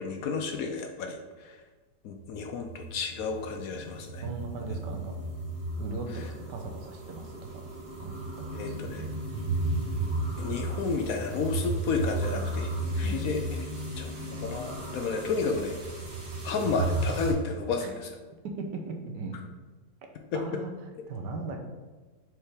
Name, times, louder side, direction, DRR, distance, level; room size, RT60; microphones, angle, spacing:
voice 1, 0.0-1.6 2.0-4.2 6.2-6.3 8.5-9.1 10.4-13.4 14.0-15.8 16.4-18.1 20.3-20.6, left 5 dB, 70° left, 4 dB, 0.9 m, -32 dB
sound 1, 2.2-17.3, right 2 dB, 40° right, 1.5 m, -34 dB
voice 2, 4.2-5.1 5.7-7.6 8.0-8.2 8.7-8.8 13.0-13.2 17.8-17.9 18.4-19.4 20.3-20.7 21.1-21.7, right 3 dB, 90° right, 3 dB, 1.5 m, -38 dB
4.7 x 4.3 x 4.9 m, 1.3 s
omnidirectional pair, 1.8 m